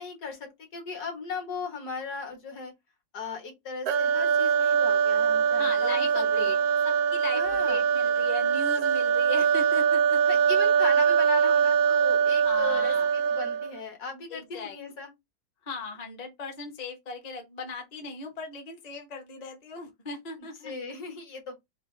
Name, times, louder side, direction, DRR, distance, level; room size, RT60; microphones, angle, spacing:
voice 1, 0.0-2.7 3.1-6.6 7.3-7.8 10.3-15.1 20.6-21.5, left 5 dB, 65° left, 1.9 m, -37 dB
sound 1, 3.9-13.8, right 7 dB, 70° right, 1.0 m, -23 dB
voice 2, 5.6-6.6 6.8-10.4 12.4-13.1 14.3-14.8 15.6-20.7, left 4 dB, 35° left, 0.7 m, -38 dB
4.6 x 2.2 x 3.2 m
omnidirectional pair, 1.9 m